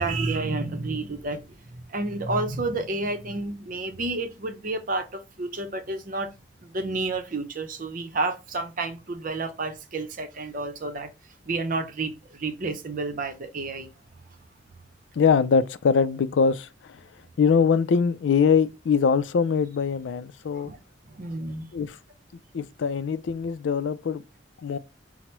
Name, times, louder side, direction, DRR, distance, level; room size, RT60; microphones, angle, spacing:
voice 1, 0.0-6.3 6.6-11.1 11.4-13.9 20.5-20.8 21.1-21.7, right 3 dB, 50° right, 0.7 m, -30 dB
voice 2, 15.2-16.7 17.4-20.7 21.7-22.0 22.5-24.2 24.6-24.8, left 6 dB, 85° left, 0.4 m, -22 dB
5.9 x 2.1 x 4.3 m
head